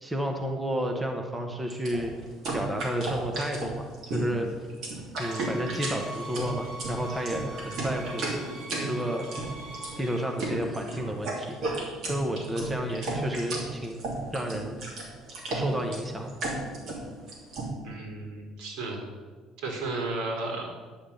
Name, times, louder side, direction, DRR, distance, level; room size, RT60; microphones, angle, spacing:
voice 1, 0.0-2.2 2.5-4.5 5.2-8.4 8.8-9.3 10.0-11.6 12.1-14.0 14.3-14.8 15.5-16.3, equal, 10° right, 3 dB, 0.9 m, -31 dB
sound 1, 1.7-17.7, right 2 dB, 45° right, 3.0 m, -33 dB
sound 2, 5.2-10.2, right 2 dB, 60° right, 3.0 m, -42 dB
voice 2, 17.8-19.1 19.6-20.7, right 2 dB, 80° right, 1 dB, 3.3 m, -33 dB
10.5 x 5.9 x 8.2 m, 1.4 s
cardioid pair, 165°, 0 cm